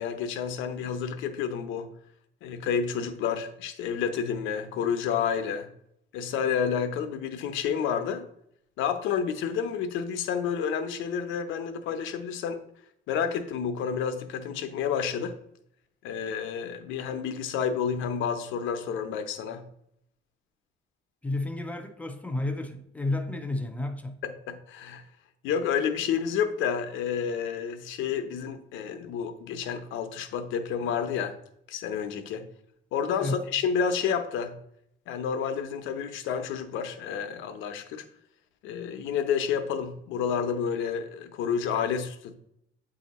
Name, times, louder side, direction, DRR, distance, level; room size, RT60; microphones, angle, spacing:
voice 1, 0.0-1.9 2.4-5.7 6.1-8.3 8.8-12.6 13.1-15.4 16.0-19.6 24.2-25.0 25.4-31.3 31.7-32.5 32.9-34.5 35.1-38.0 38.6-42.3, left 7 dB, 90° left, 0.7 m, -30 dB
voice 2, 21.2-24.2 33.2-33.5, left 2 dB, 5° left, 0.3 m, -31 dB
8.2 x 2.8 x 4.1 m
cardioid pair, 180°, 19 cm